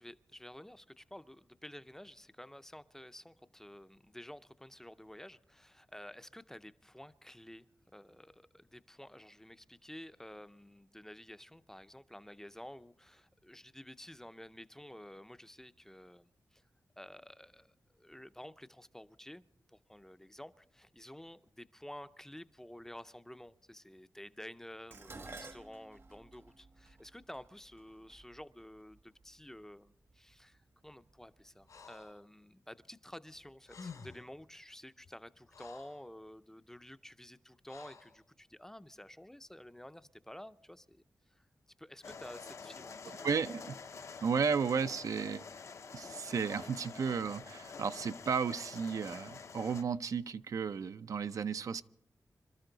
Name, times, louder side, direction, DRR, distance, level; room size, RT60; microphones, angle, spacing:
voice 1, 0.0-7.7 7.9-16.6 17.0-19.4 19.7-41.0 41.3-41.5 41.8-43.4, left 1 dB, 5° left, 0.5 m, -51 dB
Dishes pots and pans, 24.9-29.3 30.2-30.6 30.9-31.8 32.0-32.1, right 3 dB, 45° right, 1.0 m, -53 dB
Breathing, 31.7-32.2 33.4-33.5 33.6-34.3 35.0-36.1 37.7-38.2, left 5 dB, 80° left, 2.3 m, -51 dB
sound 1, 42.0-49.8, left 5 dB, 60° left, 0.6 m, -48 dB
voice 2, 43.1-43.7 44.2-45.4 45.9-51.8, right 6 dB, 70° right, 0.5 m, -34 dB
26.5 x 13.0 x 3.9 m
wide cardioid pair, 120°, 6 cm